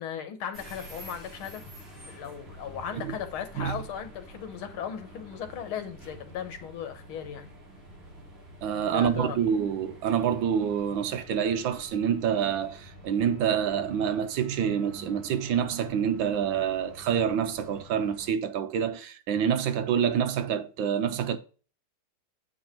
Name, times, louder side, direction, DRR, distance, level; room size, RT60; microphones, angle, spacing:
voice 1, 0.0-1.7 2.1-7.5 8.9-9.5, left 8 dB, 90° left, 2.0 m, -37 dB
sound 1, 0.5-18.3, equal, 30° right, 3.1 m, -48 dB
voice 2, 8.6-21.4, right 8 dB, 70° right, 1.5 m, -27 dB
7.8 x 4.8 x 4.4 m
omnidirectional pair, 2.2 m